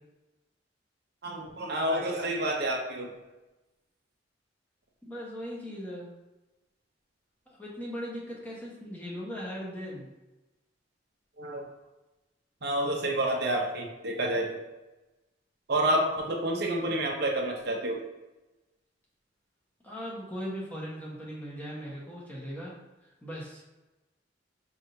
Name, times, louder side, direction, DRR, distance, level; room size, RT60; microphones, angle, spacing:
voice 1, 1.2-3.1 11.4-11.7 12.6-14.6 15.7-18.0, right 1 dB, 60° right, 0 dB, 0.7 m, -29 dB
voice 2, 5.0-6.1 7.5-10.1 19.8-22.7 23.0-23.6, equal, 10° left, -6 dB, 1.1 m, -39 dB
5.5 x 3.6 x 2.7 m, 1.1 s
head